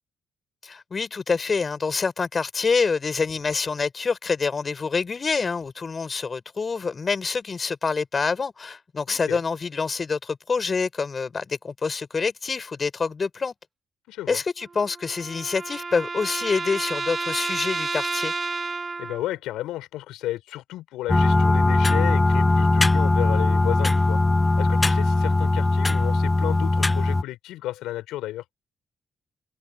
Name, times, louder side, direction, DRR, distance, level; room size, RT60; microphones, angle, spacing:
voice 1, 0.6-13.5 14.3-18.3, left 5 dB, 40° left, 4.9 m, -26 dB
voice 2, 9.1-9.4 14.1-14.4 19.0-24.2 24.6-28.4, left 15 dB, 75° left, 4.6 m, -33 dB
sound 1, 14.6-19.3, right 4 dB, 35° right, 3.9 m, -31 dB
sound 2, 21.1-27.2, left 2 dB, 25° left, 0.5 m, -20 dB
hypercardioid pair, 45°, 0 cm